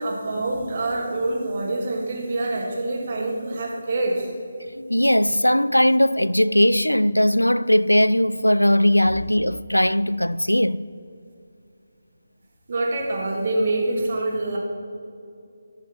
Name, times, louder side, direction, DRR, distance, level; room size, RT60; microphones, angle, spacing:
voice 1, 0.0-4.3 12.7-14.6, right 2 dB, 40° right, 2.1 m, -25 dB
voice 2, 4.8-10.8, left 1 dB, 90° left, 0.3 m, -19 dB
12.5 x 7.0 x 4.4 m
figure-of-eight pair, 150°, 0 cm